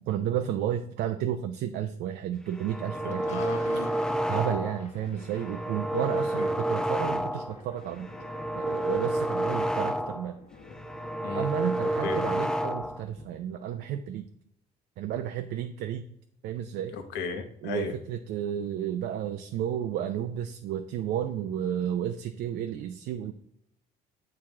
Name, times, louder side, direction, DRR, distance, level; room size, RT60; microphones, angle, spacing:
voice 1, 0.0-3.4 4.3-8.1 8.6-10.4 11.3-14.3 15.0-16.1 16.4-16.9 17.6-23.3, right 10 dB, 75° right, 7 dB, 0.5 m, -32 dB
sound 1, 2.5-4.9 5.3-7.6 8.0-10.3 10.7-13.1, right 1 dB, 5° left, 0.4 m, -30 dB
voice 2, 3.0-3.9 6.4-6.5 11.2-11.5 12.0-12.2 16.9-17.9, left 5 dB, 80° left, 6 dB, 1.0 m, -35 dB
Thunder, 3.0-13.6, left 3 dB, 40° left, 1.1 m, -50 dB
7.4 x 4.8 x 3.5 m, 0.72 s
cardioid pair, 110°, 17 cm